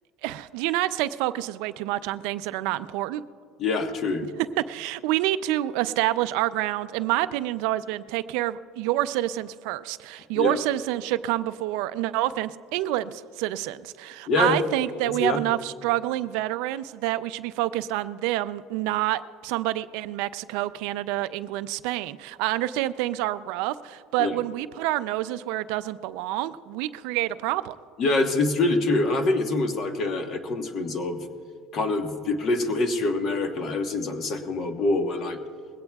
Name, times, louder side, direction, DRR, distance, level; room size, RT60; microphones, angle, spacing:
voice 1, 0.2-3.2 4.2-4.3 4.6-27.8, right 15 dB, 75° right, 13 dB, 0.4 m, -28 dB
voice 2, 3.6-4.3 10.4-10.6 14.3-14.6 15.1-15.4 24.2-24.4 28.0-31.2 31.7-35.4, left 2 dB, 40° left, 5 dB, 1.3 m, -25 dB
21.0 x 17.0 x 2.3 m, 2.2 s
cardioid pair, 140°, 0 cm